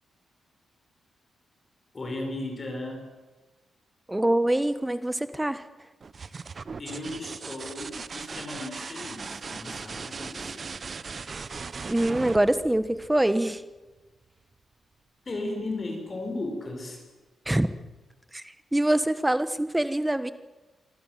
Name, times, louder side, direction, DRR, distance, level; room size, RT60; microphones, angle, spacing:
voice 1, 1.9-3.1 6.8-10.7 15.3-17.0, left 2 dB, 25° left, 2 dB, 5.7 m, -35 dB
voice 2, 4.1-5.6 11.8-13.6 17.5-17.7 18.3-18.4 18.7-20.3, right 1 dB, 5° right, 12 dB, 1.2 m, -24 dB
sound 1, 6.0-13.6 15.4-15.9, right 5 dB, 35° right, 0.9 m, -38 dB
25.5 x 25.0 x 7.7 m, 1.2 s
wide cardioid pair, 170°, 0 cm